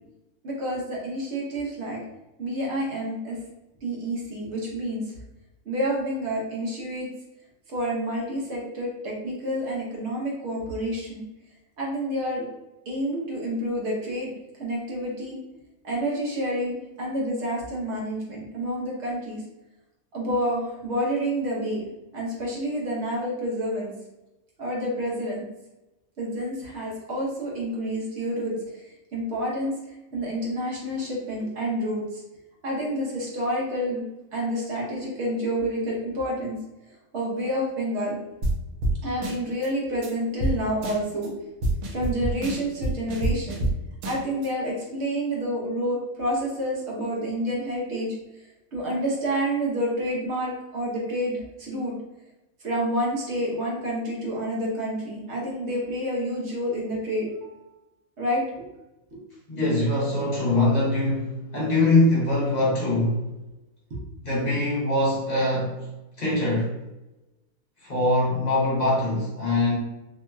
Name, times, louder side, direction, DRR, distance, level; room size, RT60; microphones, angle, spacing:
voice 1, 0.4-2.0 2.4-3.4 3.8-5.2 5.7-7.1 7.7-11.2 11.8-12.4 12.9-14.3 14.6-15.4 15.8-19.4 20.1-21.9 22.1-23.9 24.6-25.4 26.2-28.5 29.1-29.7 30.1-32.2 32.6-34.0 34.3-36.6 37.1-38.2 39.0-41.3 41.9-43.7 44.0-48.1 48.7-51.9 52.6-57.7 58.2-58.4 59.1-59.2 63.9-64.0, equal, 55° right, -4 dB, 1.1 m, -28 dB
sound 1, 38.4-38.6 38.8-39.0 39.2-39.7 40.0-40.1 40.4-40.5 40.8-41.3 41.6-43.7 44.0-44.5, right 2 dB, 80° right, 1.0 m, -26 dB
voice 2, 59.5-63.2 64.2-65.9 66.2-66.7 67.8-69.8, left 2 dB, 35° left, -7 dB, 0.8 m, -23 dB
3.0 x 2.8 x 2.2 m, 0.99 s
omnidirectional pair, 1.5 m